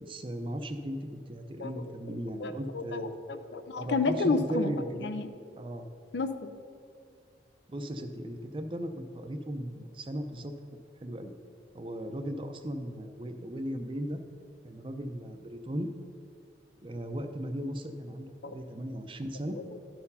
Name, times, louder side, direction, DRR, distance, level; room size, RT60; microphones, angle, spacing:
voice 1, 0.0-3.1 3.8-5.1 5.6-5.9 7.7-10.5 11.0-11.3 11.7-14.2 14.6-15.9 16.8-19.6, equal, 30° right, 7 dB, 0.5 m, -37 dB
voice 2, 1.6-5.3 6.1-6.5 18.4-18.6 19.5-19.6, left 3 dB, 75° left, 10 dB, 0.5 m, -32 dB
12.0 x 4.4 x 5.5 m, 2.3 s
head